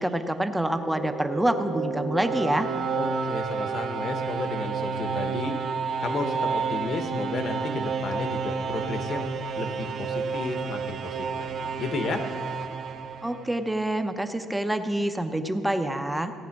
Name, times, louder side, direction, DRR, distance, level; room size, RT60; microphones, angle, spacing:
voice 1, 0.0-2.7 13.2-16.3, right 1 dB, 5° right, 7 dB, 0.7 m, -26 dB
sound 1, 0.7-13.7, right 5 dB, 55° right, 1.0 m, -30 dB
voice 2, 2.9-5.6 6.0-9.3 9.6-12.3, left 3 dB, 40° left, 7 dB, 1.1 m, -33 dB
16.0 x 9.2 x 5.9 m, 2.3 s
cardioid pair, 140°, 0 cm